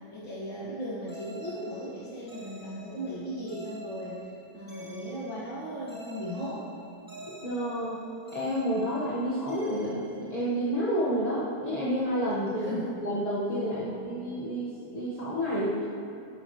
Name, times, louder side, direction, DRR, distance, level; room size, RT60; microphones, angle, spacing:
voice 1, 0.1-4.2 4.5-6.7 12.6-12.9 13.7-14.2, equal, 75° left, -8 dB, 2.7 m, -37 dB
sound 1, 1.1-10.9, equal, 10° right, 1.8 m, -46 dB
voice 2, 7.4-8.0 8.3-12.7 13.0-15.8, equal, 20° left, -7 dB, 1.3 m, -30 dB
13.0 x 11.0 x 3.2 m, 2.8 s
omnidirectional pair, 2.1 m